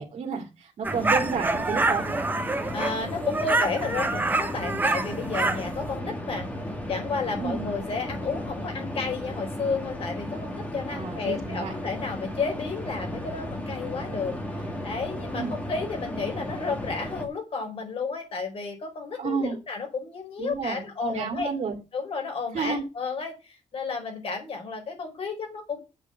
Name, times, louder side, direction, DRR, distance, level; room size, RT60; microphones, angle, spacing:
voice 1, 0.0-2.0 7.4-7.6 10.9-11.7 15.3-15.5 19.2-19.6 20.4-21.8 22.5-22.8, right 5 dB, 60° right, 2 dB, 2.5 m, -31 dB
sound 1, 0.8-17.3, left 1 dB, 10° left, 2.1 m, -35 dB
sound 2, 0.8-5.7, right 3 dB, 15° right, 1.0 m, -26 dB
voice 2, 2.7-21.5 21.9-25.8, left 4 dB, 50° left, 3 dB, 4.8 m, -32 dB
8.3 x 6.9 x 7.1 m, 0.28 s
wide cardioid pair, 175°, 12 cm